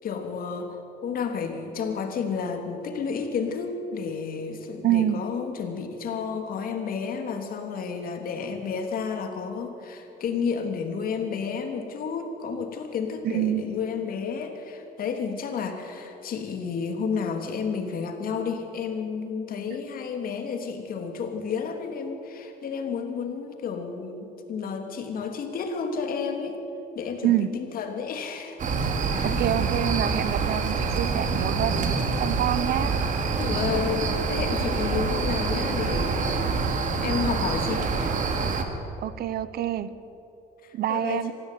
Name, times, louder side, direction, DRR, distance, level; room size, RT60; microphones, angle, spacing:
voice 1, 0.0-26.6 26.9-28.6 29.1-29.3 33.4-36.5 37.0-38.2 40.6-41.3, left 6 dB, 60° left, 5 dB, 3.2 m, -31 dB
voice 2, 4.8-5.2 13.2-13.6 27.2-27.5 29.2-33.0 39.0-39.9 40.7-41.3, right 12 dB, 65° right, 15 dB, 1.1 m, -26 dB
sound 1, 28.6-38.6, right 4 dB, 50° right, 2.7 m, -26 dB
24.5 x 16.0 x 9.4 m, 2.9 s
cardioid pair, 110°, 17 cm